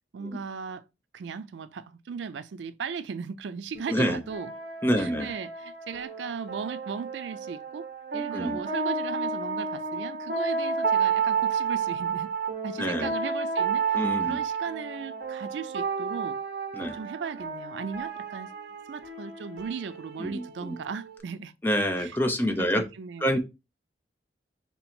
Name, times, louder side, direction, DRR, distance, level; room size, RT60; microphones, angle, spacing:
voice 1, 0.1-0.8 1.1-4.5 5.0-7.9 8.1-12.3 12.6-16.4 16.8-18.5 18.9-21.5 22.0-22.2 22.5-23.4, right 5 dB, 90° right, 0.4 m, -37 dB
sound 1, 3.7-21.2, right 5 dB, 60° right, 1.1 m, -31 dB
voice 2, 3.9-4.2 4.8-5.3 8.3-8.6 12.8-13.1 13.9-14.4 16.7-17.0 20.2-20.8 21.6-22.8 23.2-23.4, equal, 10° left, 0.6 m, -27 dB
3.8 x 2.9 x 4.3 m
head